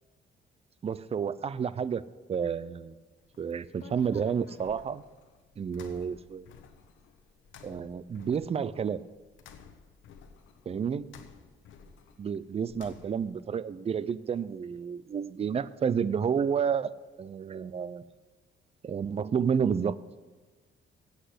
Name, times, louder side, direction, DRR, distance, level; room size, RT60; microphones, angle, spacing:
voice 1, 0.8-2.9 3.4-5.0 5.6-6.5 7.6-9.0 10.7-11.1 12.2-16.9 17.2-18.0 18.8-20.0, right 7 dB, 30° right, 18 dB, 0.4 m, -30 dB
sound 1, 3.2-13.4, left 7 dB, 75° left, 1.0 m, -54 dB
8.4 x 8.0 x 7.9 m, 1.3 s
cardioid pair, 90°, 20 cm